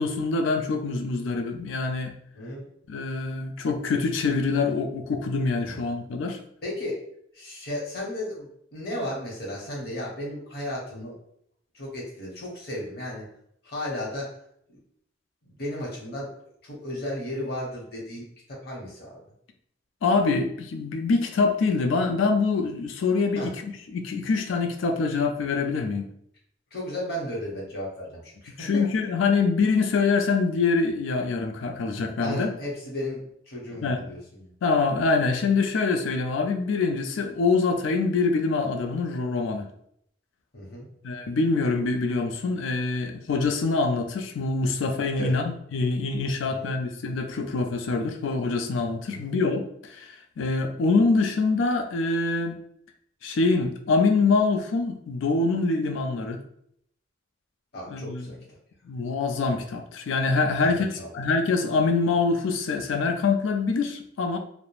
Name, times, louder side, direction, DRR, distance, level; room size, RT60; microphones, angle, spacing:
voice 1, 0.0-2.1 2.9-6.4 20.0-26.1 28.6-32.5 33.8-34.0 34.6-39.7 41.0-52.6 53.2-56.4 57.9-58.3 58.8-60.9 61.1-64.4, left 4 dB, 80° left, 5 dB, 0.4 m, -25 dB
voice 2, 2.3-2.7 5.7-5.8 6.6-7.0 7.3-11.2 11.7-13.3 13.6-14.3 15.6-16.3 16.6-19.2 23.4-23.5 26.7-28.7 32.2-33.2 33.5-34.5 40.5-40.9 45.1-45.4 46.5-46.7 49.1-49.3 57.7-58.4 60.6-61.1, left 1 dB, 55° left, -3 dB, 0.9 m, -34 dB
2.4 x 2.0 x 3.0 m, 0.70 s
head